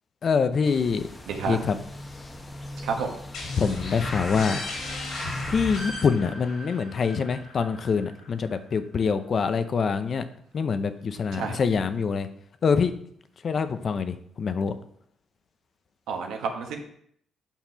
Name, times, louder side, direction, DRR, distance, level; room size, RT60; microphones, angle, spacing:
voice 1, 0.2-1.0 1.5-1.7 3.6-4.6 5.5-10.2 10.5-12.3 12.6-12.9 13.4-14.8, left 5 dB, 50° left, 10 dB, 0.8 m, -25 dB
sound 1, 0.6-5.9, left 1 dB, 25° left, 1.3 m, -38 dB
voice 2, 1.3-1.6 2.8-3.1 11.3-11.6 16.1-16.8, right 5 dB, 85° right, 3 dB, 1.3 m, -30 dB
sound 2, 3.3-8.8, left 2 dB, 75° left, 3.2 m, -36 dB
7.3 x 5.9 x 5.7 m, 0.66 s
cardioid pair, 90°, 0 cm